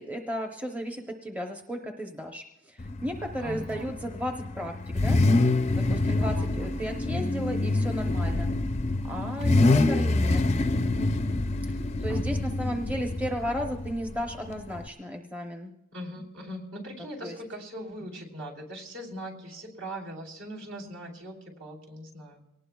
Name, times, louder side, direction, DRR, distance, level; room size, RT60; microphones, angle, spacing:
voice 1, 0.0-5.2 5.8-8.5 9.1-10.4 12.0-15.7 17.2-17.4, equal, 5° right, 2 dB, 0.7 m, -34 dB
Car / Idling / Accelerating revving vroom, 2.8-14.9, left 2 dB, 30° left, 0.5 m, -26 dB
voice 2, 3.4-3.9 6.2-6.8 9.4-9.7 12.1-12.4 15.9-22.4, equal, 65° right, -1 dB, 3.3 m, -40 dB
24.0 x 18.5 x 2.3 m, 0.91 s
head